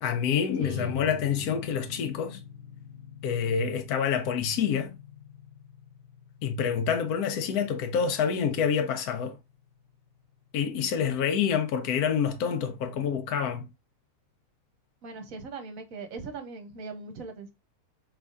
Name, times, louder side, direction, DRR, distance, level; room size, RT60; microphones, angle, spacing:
voice 1, 0.0-2.4 3.2-4.9 6.4-9.4 10.5-13.7, left 7 dB, 80° left, 1.2 m, -27 dB
sound 1, 0.6-11.6, left 8 dB, 55° left, 0.9 m, -44 dB
voice 2, 0.6-0.9 15.0-17.5, right 4 dB, 65° right, 1.3 m, -40 dB
4.6 x 3.4 x 2.5 m
omnidirectional pair, 1.6 m